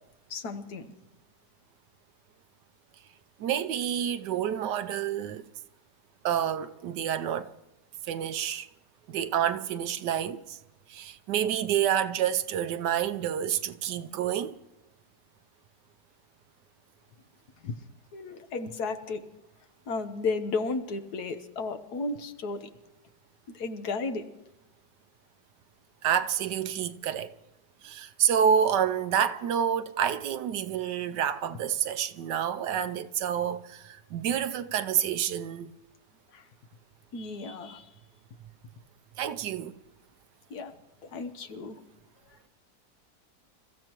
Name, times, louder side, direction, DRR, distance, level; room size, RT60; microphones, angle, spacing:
voice 1, 0.3-0.9 17.6-17.7 18.1-19.2 19.9-22.7 23.5-24.3 36.3-36.5 37.1-37.9 40.5-40.8 41.0-41.8 42.3-42.4, left 3 dB, 70° left, 1.5 m, -34 dB
voice 2, 3.4-5.5 6.2-7.5 8.0-8.7 9.1-10.6 10.9-14.6 26.0-27.3 27.8-35.7 39.2-39.8, right 9 dB, 85° right, 1.3 m, -28 dB
28.0 x 14.5 x 3.0 m
omnidirectional pair, 1.8 m